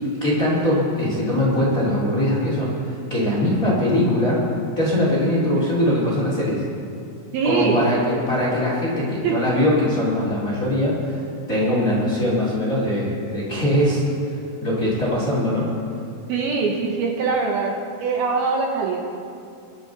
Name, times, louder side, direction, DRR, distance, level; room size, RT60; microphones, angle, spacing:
voice 1, 0.2-4.4 4.8-6.6 7.4-14.0 14.6-15.7, left 1 dB, 25° left, -5 dB, 2.2 m, -21 dB
voice 2, 7.3-7.9 9.2-9.4 16.3-19.0, right 4 dB, 70° right, 1 dB, 2.7 m, -22 dB
22.5 x 11.0 x 4.0 m, 2.5 s
omnidirectional pair, 5.0 m